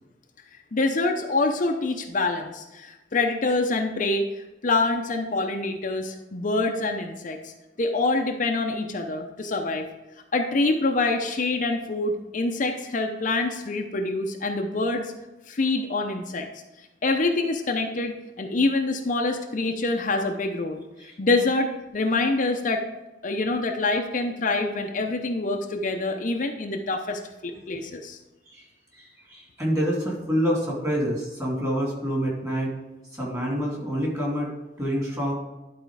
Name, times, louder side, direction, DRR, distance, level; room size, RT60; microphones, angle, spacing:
voice 1, 0.7-4.3 4.6-9.9 10.3-15.1 15.5-16.5 17.0-22.8 23.2-28.2, left 2 dB, 45° left, 3 dB, 0.6 m, -26 dB
voice 2, 28.9-32.7 33.2-34.5 34.8-35.3, equal, 20° right, -3 dB, 2.6 m, -27 dB
11.5 x 4.3 x 4.7 m, 1.0 s
head